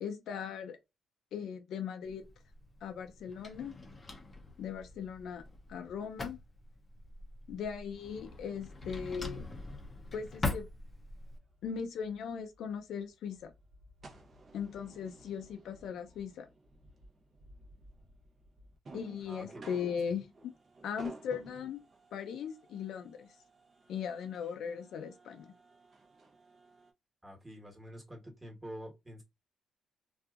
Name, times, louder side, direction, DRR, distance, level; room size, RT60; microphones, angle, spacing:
voice 1, 0.0-0.8 1.3-2.3 2.8-3.8 4.6-5.4 5.7-6.4 7.5-9.4 10.1-10.7 11.6-13.5 14.5-16.5 18.9-20.5 20.8-21.8 22.1-23.3 23.9-25.5, left 7 dB, 75° left, 0.5 m, -39 dB
Drawer open or close, 2.0-11.4, left 2 dB, 25° left, 0.6 m, -43 dB
sound 1, 11.1-26.9, right 2 dB, 40° right, 0.8 m, -55 dB
voice 2, 27.2-29.2, equal, 15° right, 1.3 m, -47 dB
2.6 x 2.4 x 2.4 m
cardioid pair, 90°, 0 cm